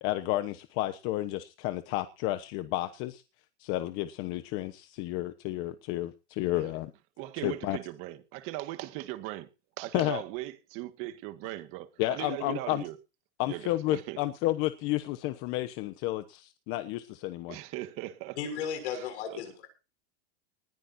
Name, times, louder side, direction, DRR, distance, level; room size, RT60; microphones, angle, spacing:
voice 1, 0.0-3.2 3.6-6.9 7.4-7.8 9.9-10.2 12.0-12.8 13.4-17.6, left 16 dB, 35° left, 1.1 m, -31 dB
voice 2, 7.2-9.5 9.8-12.9 13.5-14.2 17.5-18.4 18.9-19.4, right 16 dB, 40° right, 1.8 m, -39 dB
voice 3, 18.4-19.7, left 7 dB, 70° left, 6.8 m, -35 dB
20.5 x 15.0 x 2.7 m
supercardioid pair, 160°, 35 cm